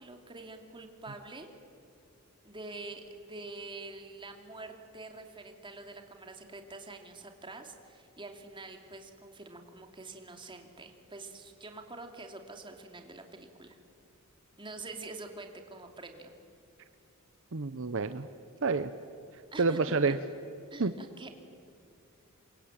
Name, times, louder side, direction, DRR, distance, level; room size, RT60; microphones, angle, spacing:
voice 1, 0.0-1.5 2.4-13.8 14.6-16.3 19.5-19.8 20.7-21.3, right 2 dB, 20° right, 4 dB, 2.7 m, -46 dB
voice 2, 17.5-18.3 18.6-18.9 19.6-20.2 20.8-20.9, right 4 dB, 60° right, 11 dB, 0.8 m, -28 dB
28.0 x 23.5 x 8.9 m, 2.6 s
head